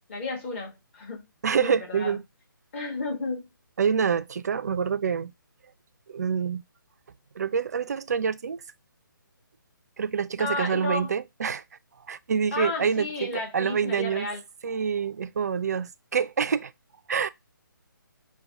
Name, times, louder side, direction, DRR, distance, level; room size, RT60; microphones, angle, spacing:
voice 1, 0.1-1.2 1.5-2.2 2.7-3.5 10.4-11.1 12.5-14.4, left 3 dB, 35° left, 1.5 m, -32 dB
voice 2, 1.4-2.2 3.8-5.3 6.1-6.6 7.4-8.6 10.0-11.6 12.1-14.3 14.6-16.7 17.1-17.3, right 6 dB, 50° right, 0.4 m, -26 dB
5.1 x 2.2 x 3.4 m
figure-of-eight pair, 140°, 11 cm